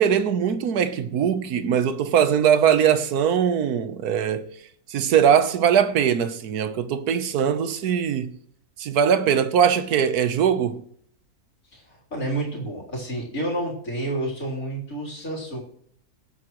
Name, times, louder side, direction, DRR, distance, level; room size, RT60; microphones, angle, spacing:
voice 1, 0.0-4.5 4.9-8.3 8.8-10.8, right 8 dB, 80° right, 1.4 m, -21 dB
voice 2, 11.7-15.6, right 1 dB, 60° left, 4.0 m, -30 dB
19.0 x 8.6 x 3.1 m
omnidirectional pair, 1.6 m